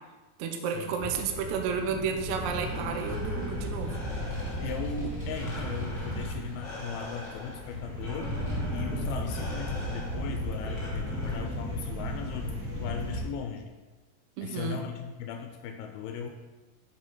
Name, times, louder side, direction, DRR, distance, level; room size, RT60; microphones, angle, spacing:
voice 1, 0.4-4.0 14.4-14.8, right 6 dB, 85° right, 4 dB, 1.7 m, -32 dB
Howling Wind on Backdoor Porch, 1.0-13.2, equal, 65° right, 3.4 m, -35 dB
Vehicle, 1.7-12.6, left 3 dB, 10° left, 2.0 m, -49 dB
Breathing, 2.3-11.8, left 1 dB, 40° left, 1.8 m, -45 dB
voice 2, 4.6-8.3 8.7-13.7 14.4-16.3, left 6 dB, 90° left, 4 dB, 2.5 m, -38 dB
6.8 x 5.5 x 5.3 m, 1.2 s
omnidirectional pair, 4.3 m